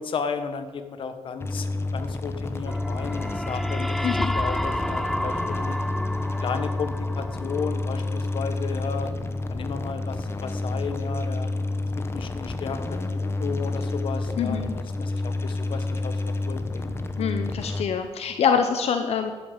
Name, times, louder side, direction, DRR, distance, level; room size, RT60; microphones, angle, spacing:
voice 1, 0.0-1.7 1.9-5.8 6.4-9.1 9.5-11.5 12.1-16.9, left 6 dB, 50° left, 8 dB, 1.2 m, -34 dB
sound 1, 1.4-17.8, left 2 dB, 20° left, 0.9 m, -29 dB
sound 2, 2.7-8.5, equal, ahead, 0.5 m, -31 dB
voice 2, 14.4-14.8 17.2-19.3, left 7 dB, 70° left, 7 dB, 0.9 m, -25 dB
12.0 x 8.9 x 9.0 m, 1.5 s
wide cardioid pair, 180°, 11 cm